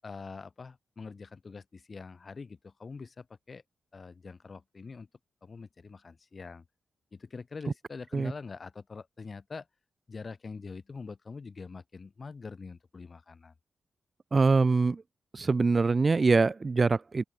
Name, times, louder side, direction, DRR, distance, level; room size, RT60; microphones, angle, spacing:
voice 1, 0.0-3.6 3.9-5.1 5.4-6.6 7.1-9.7 10.1-13.5, left 4 dB, 35° left, 7.2 m, -44 dB
voice 2, 14.3-15.0 15.3-17.2, right 4 dB, 30° right, 0.6 m, -24 dB
open air
wide cardioid pair, 170°, 0 cm